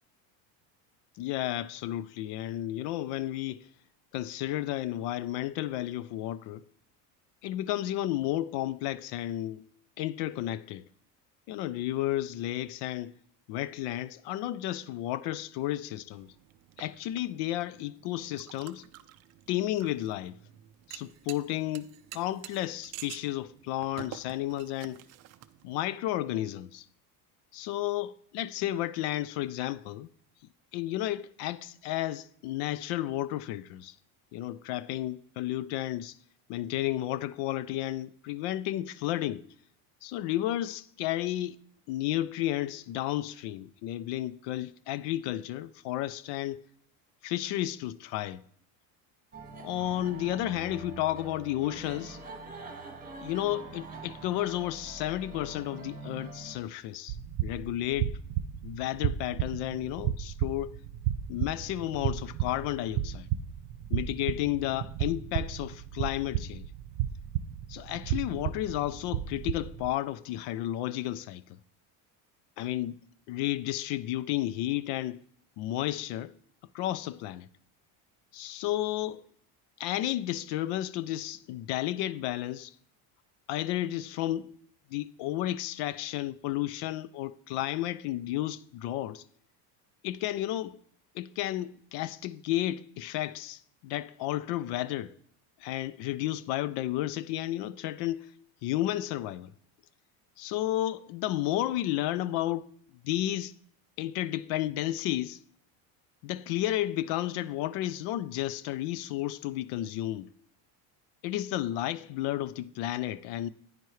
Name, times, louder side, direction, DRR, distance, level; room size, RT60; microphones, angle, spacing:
voice 1, 1.2-3.7 4.1-6.6 7.4-9.6 10.0-10.9 11.5-13.2 13.5-16.3 16.8-18.8 19.5-20.4 20.9-25.0 25.6-26.9 27.5-30.1 30.7-33.9 34.3-36.2 36.5-39.4 40.0-41.6 41.9-46.6 47.2-48.4 49.6-52.2 53.2-57.2 57.4-58.2 58.6-60.7 61.3-63.3 63.9-66.6 67.7-71.4 72.6-73.0 73.3-75.2 75.6-76.3 76.7-77.5 78.3-79.2 79.8-82.7 83.5-84.5 84.9-89.2 90.0-90.8 91.1-95.1 95.6-98.2 98.6-99.5 100.4-102.7 103.1-103.5 104.0-105.3 106.2-110.3 111.2-113.5, left 14 dB, 65° left, 0.5 m, -32 dB
sound 1, 16.1-25.8, right 13 dB, 40° right, 0.4 m, -49 dB
sound 2, 49.3-56.6, right 3 dB, 20° right, 1.6 m, -44 dB
sound 3, 57.1-69.9, right 11 dB, 65° right, 0.7 m, -33 dB
10.0 x 9.4 x 3.2 m
cardioid pair, 150°, 44 cm